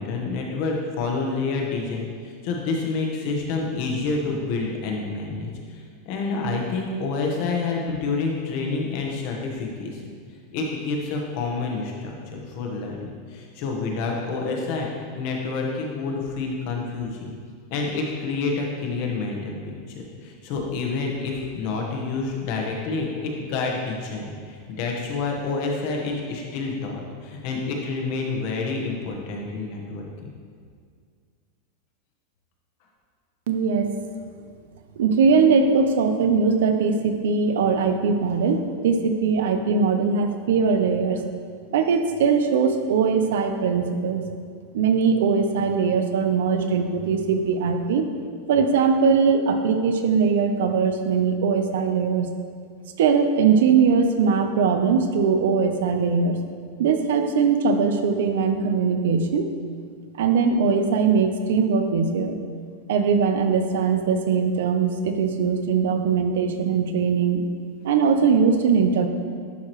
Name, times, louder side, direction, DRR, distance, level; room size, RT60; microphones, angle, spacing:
voice 1, 0.0-10.0 10.5-17.3 17.7-30.0, left 3 dB, 40° left, 0 dB, 1.0 m, -28 dB
voice 2, 33.5-33.9 35.0-41.2 41.7-44.3 44.7-48.1 48.5-52.3 53.0-56.4 56.8-59.5 60.2-62.4 62.9-67.4 67.8-69.1, right 5 dB, 75° right, 7 dB, 0.6 m, -21 dB
11.0 x 4.7 x 3.1 m, 2.1 s
supercardioid pair, 175°, 0 cm